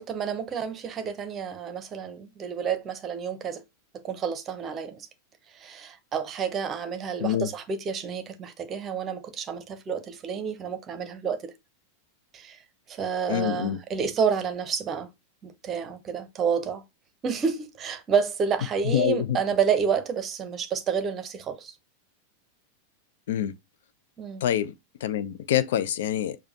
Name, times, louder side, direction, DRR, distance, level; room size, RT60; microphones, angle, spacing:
voice 1, 0.0-3.6 4.0-5.1 5.5-11.5 12.3-12.6 12.9-15.1 15.4-16.8 17.2-21.7 24.2-24.4, right 6 dB, 25° right, 0.8 m, -29 dB
voice 2, 13.3-13.8 18.8-19.4 23.3-23.5 24.4-24.7 25.0-26.4, left 11 dB, 55° left, 0.4 m, -26 dB
6.7 x 2.3 x 2.8 m
figure-of-eight pair, 90°, 0 cm